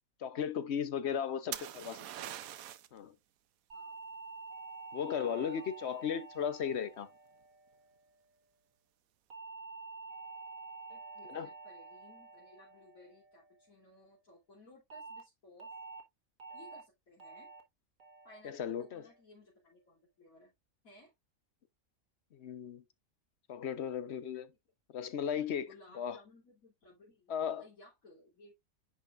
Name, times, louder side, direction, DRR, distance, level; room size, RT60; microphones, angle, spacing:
voice 1, 0.2-1.9 2.9-3.1 4.9-7.1 11.3-11.5 18.4-19.1 22.3-22.8 23.5-24.5 24.9-25.7 25.9-26.2 27.3-27.6, left 8 dB, 60° left, 0.9 m, -36 dB
voice 2, 1.0-1.9 3.7-4.0 5.2-5.7 10.9-15.7 16.5-17.5 18.2-20.5 20.8-21.1 25.3-28.5, left 1 dB, 80° left, 3.4 m, -59 dB
sound 1, 1.5-3.0 6.6-7.1, right 12 dB, 85° right, 1.1 m, -43 dB
sound 2, 3.7-8.2 9.3-13.8 14.9-15.2 15.6-16.0 16.4-16.8 17.2-17.6 18.0-18.4 18.8-19.2, right 4 dB, 70° right, 2.1 m, -49 dB
10.5 x 5.0 x 2.4 m
omnidirectional pair, 1.4 m